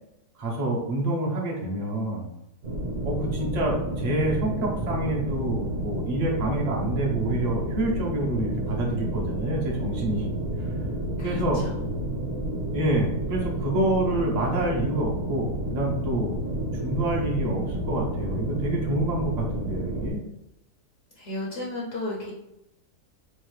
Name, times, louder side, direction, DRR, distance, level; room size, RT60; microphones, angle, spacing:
voice 1, 0.4-2.3 3.0-10.3 10.6-10.7 11.2-11.6 12.7-16.3 16.6-20.2, right 1 dB, 40° right, -3 dB, 0.6 m, -27 dB
sound 1, 2.6-20.1, right 1 dB, 55° right, 1.3 m, -30 dB
voice 2, 11.2-11.9 21.1-22.3, left 1 dB, 60° left, -4 dB, 1.1 m, -34 dB
4.3 x 2.4 x 3.2 m, 0.85 s
omnidirectional pair, 1.7 m